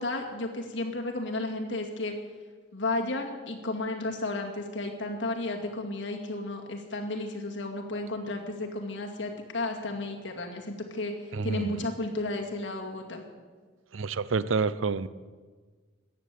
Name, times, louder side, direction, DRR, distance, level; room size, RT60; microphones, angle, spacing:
voice 1, 0.0-2.1 2.7-13.2, left 2 dB, 65° left, 1 dB, 2.3 m, -33 dB
voice 2, 11.3-11.8 13.9-15.1, right 4 dB, 90° right, 17 dB, 0.6 m, -28 dB
14.0 x 9.1 x 8.4 m, 1.4 s
head